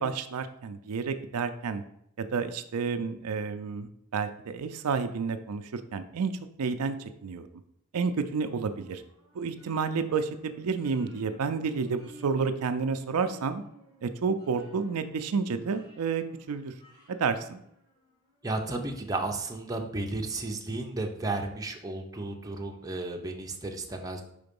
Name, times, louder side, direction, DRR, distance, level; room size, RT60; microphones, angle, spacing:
voice 1, 0.0-1.8 2.2-6.3 6.6-7.5 7.9-9.0 9.3-13.6 14.0-16.7 17.1-17.6, right 5 dB, 80° right, 9 dB, 0.5 m, -30 dB
sound 1, 8.5-18.3, left 1 dB, 15° left, 1.7 m, -54 dB
voice 2, 18.4-24.2, right 2 dB, 15° right, 2 dB, 0.7 m, -33 dB
5.1 x 3.8 x 5.2 m, 0.75 s
head